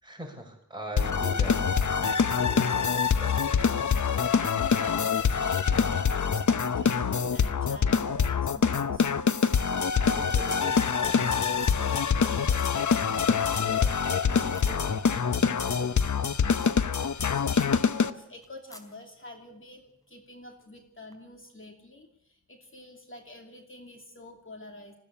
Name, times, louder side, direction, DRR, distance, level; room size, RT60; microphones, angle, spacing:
voice 1, 0.0-3.7 10.1-15.7, right 1 dB, 15° right, 1 dB, 6.2 m, -43 dB
sound 1, 1.0-18.1, left 6 dB, 75° left, 0.9 m, -25 dB
voice 2, 4.4-9.1 17.3-24.9, left 2 dB, 40° left, 3 dB, 2.7 m, -47 dB
sound 2, 9.5-9.8 10.1-11.1 11.3-11.8 12.1-12.2 12.4-12.7 13.2-13.3 13.5-13.7 14.1-14.2 14.5-14.7 15.6-15.9 16.2-16.3 16.6-16.8 17.2-17.3 17.5-17.8 18.4-18.9 21.1-21.2, equal, 10° left, 3.9 m, -50 dB
20.5 x 15.5 x 8.8 m, 0.83 s
wide cardioid pair, 75°, 30 cm